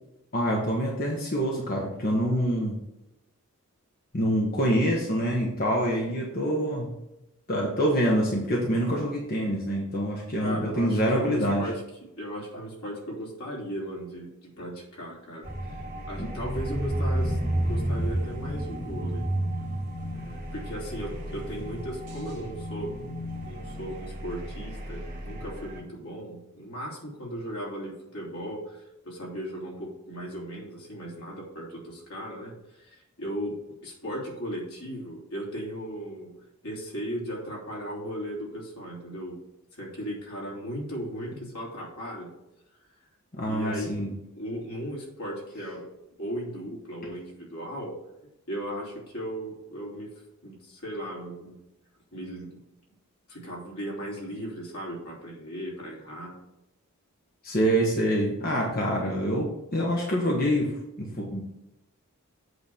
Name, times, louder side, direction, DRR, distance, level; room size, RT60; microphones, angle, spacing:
voice 1, 0.3-2.8 4.1-7.0 7.5-11.7 16.2-16.3 43.3-44.1 57.4-61.4, equal, 40° left, -2 dB, 1.3 m, -26 dB
voice 2, 10.4-11.7 12.2-15.8 16.1-19.3 20.1-36.3 36.6-39.4 39.7-42.3 43.4-43.9 44.3-45.9 46.2-47.9 48.5-50.1 50.4-51.6 52.1-52.5 53.3-56.4, equal, 80° left, -4 dB, 3.2 m, -37 dB
sound 1, 15.4-25.8, right 1 dB, 35° right, 2.5 m, -32 dB
8.1 x 4.0 x 6.9 m, 0.90 s
head